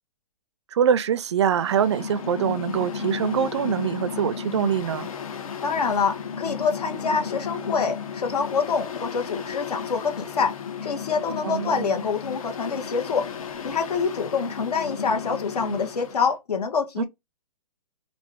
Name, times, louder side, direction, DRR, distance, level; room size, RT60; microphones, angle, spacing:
voice 1, 0.7-5.1 11.4-12.0 17.0-17.1, right 8 dB, 45° right, 0.4 m, -24 dB
Mechanical fan, 1.4-16.3, left 6 dB, 60° left, 0.9 m, -34 dB
voice 2, 5.6-10.5 10.8-13.3 13.6-17.0, left 5 dB, 75° left, 1.6 m, -26 dB
4.2 x 2.7 x 3.5 m
hypercardioid pair, 170°, 20 cm